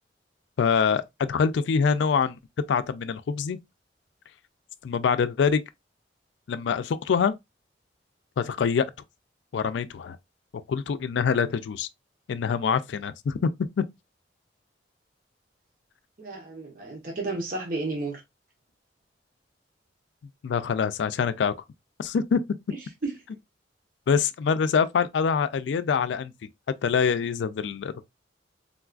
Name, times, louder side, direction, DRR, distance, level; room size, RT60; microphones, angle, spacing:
voice 1, 0.6-2.4 2.7-3.6 4.8-5.6 6.5-7.3 8.4-8.9 9.5-10.2 10.7-11.9 12.3-13.8 20.4-21.5 22.0-22.4 24.1-26.3 26.8-28.0, left 6 dB, 80° left, 0.3 m, -25 dB
voice 2, 16.2-18.2 23.0-23.1, right 3 dB, 50° right, 0.9 m, -32 dB
3.7 x 2.3 x 2.4 m
head